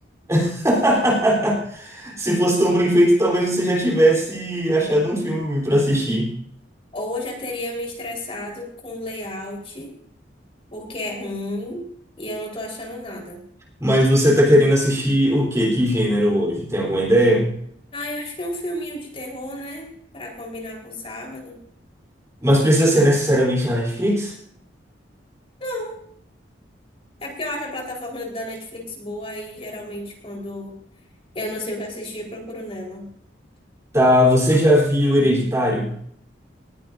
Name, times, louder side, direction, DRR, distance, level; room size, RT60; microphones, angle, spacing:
voice 1, 0.3-6.4 13.8-17.5 22.4-24.3 33.9-35.9, equal, 15° right, -2 dB, 3.6 m, -18 dB
voice 2, 6.9-9.9 10.7-11.8 12.2-13.4 17.9-21.6 25.6-26.0 27.2-30.7 31.3-33.1, left 1 dB, 30° left, -1 dB, 4.2 m, -32 dB
19.5 x 16.0 x 2.6 m, 0.65 s
head